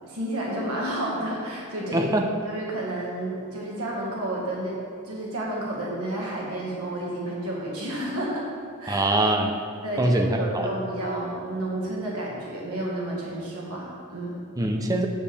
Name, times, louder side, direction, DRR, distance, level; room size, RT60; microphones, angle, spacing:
voice 1, 0.0-2.1 2.4-4.8 5.0-8.5 8.8-9.1 9.8-14.4, right 1 dB, 90° right, -4 dB, 1.7 m, -31 dB
voice 2, 1.9-2.2 8.9-9.6 10.0-10.7 14.6-15.1, right 1 dB, 15° right, 3 dB, 0.5 m, -23 dB
8.6 x 7.0 x 3.4 m, 2.4 s
head